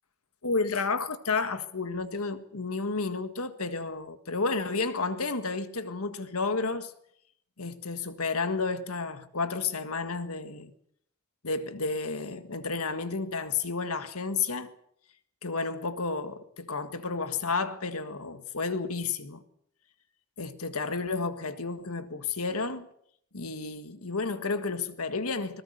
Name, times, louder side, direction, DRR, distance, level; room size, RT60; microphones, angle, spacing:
voice 1, 0.4-6.9 7.6-10.7 11.4-14.7 15.4-19.4 20.4-22.9 23.3-25.6, left 4 dB, 80° left, 1.7 m, -31 dB
25.5 x 20.0 x 6.7 m
head